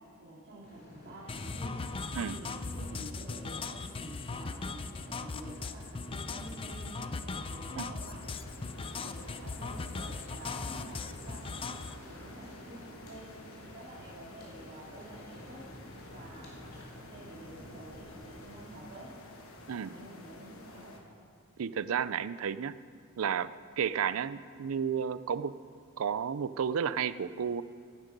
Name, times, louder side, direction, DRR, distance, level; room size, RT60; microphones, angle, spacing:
voice 1, 0.2-1.7 2.3-8.3 8.8-11.7 12.0-13.3 13.6-15.6 16.1-19.1 19.8-21.0, right 1 dB, 50° right, -10 dB, 2.8 m, -49 dB
sound 1, 0.6-18.7, equal, 45° left, 3.0 m, -52 dB
sound 2, 1.3-11.9, left 4 dB, 25° left, 0.4 m, -39 dB
sound 3, 8.2-21.0, left 2 dB, 65° left, 1.4 m, -52 dB
voice 2, 21.6-22.7 23.2-23.5 23.8-25.5 26.0-27.6, right 7 dB, 65° right, 16 dB, 0.4 m, -32 dB
16.5 x 9.7 x 5.3 m, 2.3 s
head